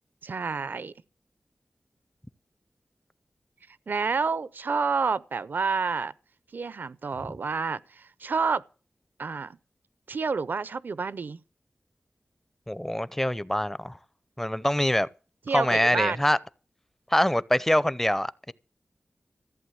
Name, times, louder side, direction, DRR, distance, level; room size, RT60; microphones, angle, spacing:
voice 1, 0.2-0.9 3.9-6.1 6.5-8.6 9.2-9.6 10.1-11.4 15.5-16.2, right 5 dB, 70° right, 0.6 m, -29 dB
voice 2, 12.7-13.9 14.4-15.1 15.5-16.4 17.1-18.5, left 1 dB, 10° left, 0.6 m, -24 dB
14.5 x 7.8 x 7.9 m
wide cardioid pair, 70°, 3 cm